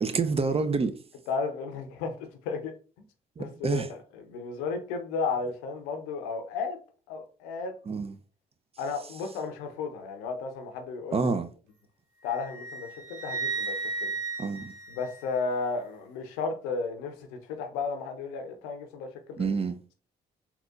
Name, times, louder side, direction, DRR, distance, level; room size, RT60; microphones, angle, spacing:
voice 1, 0.0-1.0 3.4-3.9 7.9-8.2 11.1-11.5 14.4-14.7 19.4-19.8, right 4 dB, 30° right, 0.4 m, -28 dB
voice 2, 1.3-2.2 2.4-2.7 3.4-6.8 7.1-7.7 8.8-11.3 12.2-13.8 14.0-14.1 14.9-19.4, left 4 dB, 85° left, 0.6 m, -33 dB
Wind instrument woodwind instrument, 12.2-15.7, right 4 dB, 75° right, 0.8 m, -35 dB
3.8 x 2.9 x 2.3 m
hypercardioid pair, 45°, 21 cm